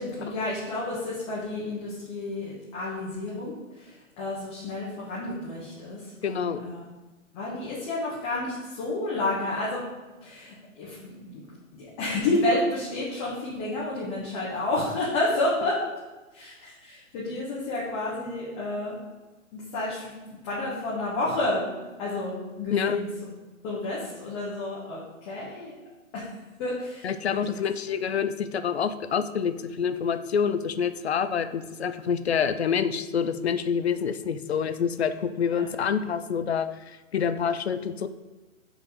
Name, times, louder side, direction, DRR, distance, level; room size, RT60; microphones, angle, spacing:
voice 1, 0.0-6.8 7.3-9.8 10.2-11.4 11.7-15.8 16.3-19.0 19.5-21.6 22.0-23.1 23.6-25.8 26.1-26.3 26.6-27.6 35.5-35.7, left 2 dB, 20° left, -7 dB, 1.4 m, -30 dB
voice 2, 6.2-6.6 22.7-23.0 27.0-38.1, left 7 dB, 50° left, 12 dB, 0.6 m, -27 dB
6.3 x 5.0 x 4.9 m, 1.2 s
figure-of-eight pair, 125°, 41 cm